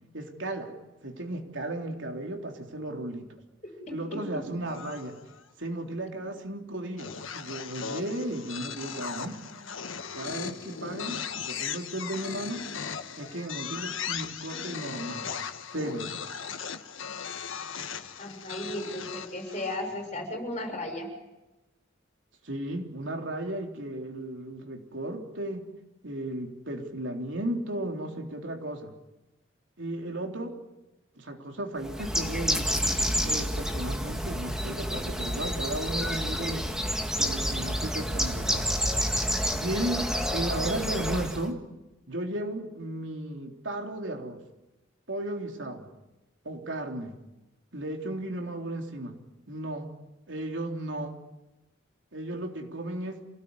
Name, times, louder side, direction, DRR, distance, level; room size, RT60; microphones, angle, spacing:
voice 1, 0.1-0.7 1.0-3.3 3.9-5.2 5.6-9.4 10.1-12.6 13.2-15.3 15.7-16.1 22.4-25.7 26.0-28.9 29.8-30.6 31.2-32.9 33.2-36.7 37.2-38.7 39.5-41.6 42.1-44.4 45.1-45.9 46.4-47.1 47.7-49.2 49.5-49.9 50.3-51.1 52.1-53.2, right 1 dB, 70° right, 3 dB, 3.6 m, -35 dB
sound 1, 4.7-5.4 7.0-19.9, left 7 dB, 90° left, 1.5 m, -38 dB
voice 2, 18.2-21.1, left 1 dB, 35° left, 4 dB, 6.8 m, -35 dB
Bird, 31.8-41.5, equal, 5° right, 1.9 m, -29 dB
27.5 x 18.0 x 9.8 m, 1.0 s
head